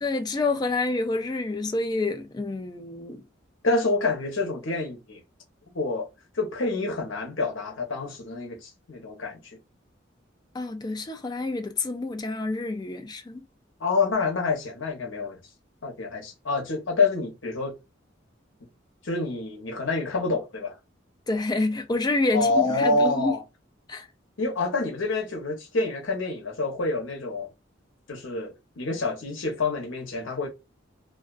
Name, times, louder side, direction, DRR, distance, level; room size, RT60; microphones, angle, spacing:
voice 1, 0.0-3.2 10.5-13.5 21.3-23.3 23.9-24.1, left 2 dB, 20° left, 0.3 m, -28 dB
voice 2, 3.6-5.2 5.7-6.1 6.3-9.6 13.8-15.4 15.8-17.8 19.0-20.7 22.3-23.4 24.4-27.5 28.1-30.5, left 3 dB, 85° left, 0.9 m, -27 dB
2.4 x 2.3 x 2.3 m
head